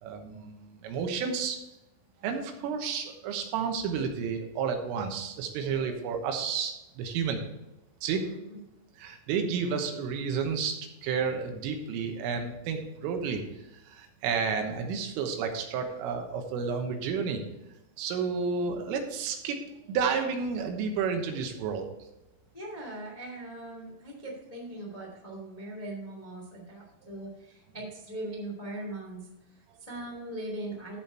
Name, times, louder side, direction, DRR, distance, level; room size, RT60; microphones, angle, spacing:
voice 1, 0.0-1.6 2.2-7.4 8.0-8.4 9.0-13.4 13.9-17.4 18.0-19.6 19.9-21.9 29.7-29.8, right 6 dB, 85° right, 4 dB, 3.8 m, -31 dB
voice 2, 22.5-31.0, right 1 dB, 25° left, -2 dB, 0.8 m, -40 dB
14.0 x 5.2 x 4.5 m, 0.93 s
omnidirectional pair, 5.7 m